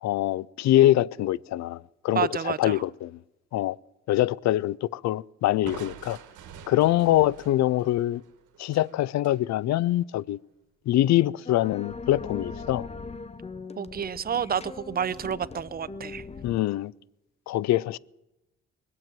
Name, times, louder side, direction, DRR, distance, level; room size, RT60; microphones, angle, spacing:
voice 1, 0.0-3.2 3.5-3.8 4.1-6.2 6.7-8.2 8.6-10.4 10.9-12.9 16.4-16.9 17.5-18.0, left 14 dB, 65° left, 0.4 m, -24 dB
voice 2, 2.1-2.8 13.8-16.2, right 8 dB, 30° right, 0.5 m, -29 dB
Crushing, 5.6-9.4, right 8 dB, 75° right, 1.4 m, -46 dB
sound 1, 11.4-16.6, left 4 dB, 20° left, 0.7 m, -40 dB
21.0 x 7.7 x 9.0 m
cardioid pair, 90°, 30 cm